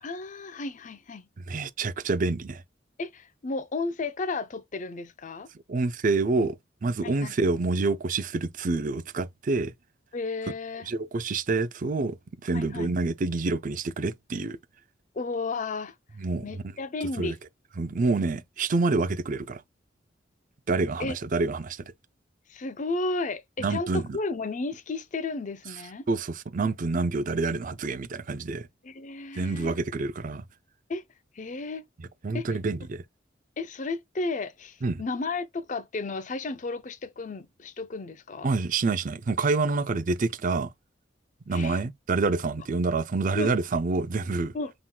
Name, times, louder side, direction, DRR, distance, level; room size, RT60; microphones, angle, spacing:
voice 1, 0.0-1.3 3.0-5.5 7.0-7.3 10.1-10.9 12.5-12.9 15.1-15.9 16.4-17.4 21.0-21.2 22.5-26.0 28.8-29.8 30.9-31.0 31.3-31.9 32.3-32.5 33.6-38.5 41.5-41.8 43.3-43.5 44.5-44.7, left 3 dB, 40° left, 0.5 m, -33 dB
voice 2, 1.5-2.6 5.7-9.7 10.8-12.2 12.4-14.6 16.2-16.4 17.2-17.3 17.8-19.6 20.7-21.8 23.6-24.0 26.1-28.7 29.3-30.4 32.2-33.0 34.8-35.0 38.4-40.7 41.5-44.5, right 3 dB, 45° right, 0.5 m, -27 dB
5.8 x 3.7 x 2.2 m
head